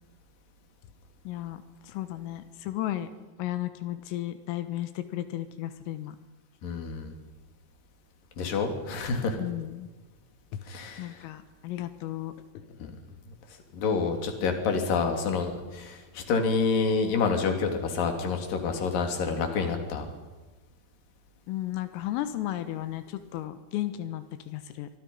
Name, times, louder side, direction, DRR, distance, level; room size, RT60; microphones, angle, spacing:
voice 1, 1.3-3.1 3.4-6.2 9.4-9.9 10.5-10.6 11.0-12.9 21.5-24.9, left 13 dB, 90° left, 10 dB, 3.9 m, -34 dB
voice 2, 6.6-7.1 8.4-9.4 10.7-11.2 12.8-12.9 13.7-20.1, left 4 dB, 50° left, 4 dB, 4.2 m, -28 dB
28.0 x 24.5 x 5.6 m, 1.3 s
omnidirectional pair, 5.8 m